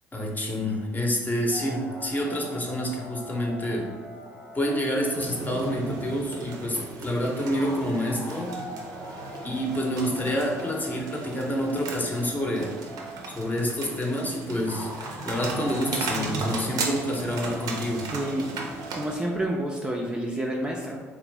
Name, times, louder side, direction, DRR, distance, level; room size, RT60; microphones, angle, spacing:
voice 1, 0.1-3.9 4.5-8.6 9.4-12.7 13.3-14.9 15.2-18.1, equal, 25° left, 0 dB, 0.8 m, -28 dB
sound 1, 1.5-19.6, equal, 75° left, 0.9 m, -42 dB
sound 2, 5.1-19.1, right 3 dB, 60° right, 0.5 m, -36 dB
voice 2, 18.1-18.5 18.9-21.0, right 1 dB, 10° right, -2 dB, 0.4 m, -29 dB
3.1 x 2.5 x 3.3 m, 1.4 s
hypercardioid pair, 50°, 7 cm